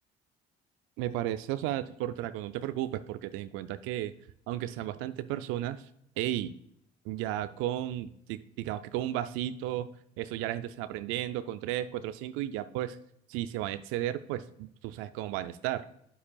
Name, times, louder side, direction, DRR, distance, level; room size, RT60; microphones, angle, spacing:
voice 1, 1.0-4.1 4.5-5.9 6.2-6.5 7.1-9.9 10.2-13.0 13.3-15.9, right 13 dB, 75° right, 12 dB, 0.4 m, -34 dB
8.4 x 6.9 x 2.3 m, 0.73 s
hypercardioid pair, 60°, 21 cm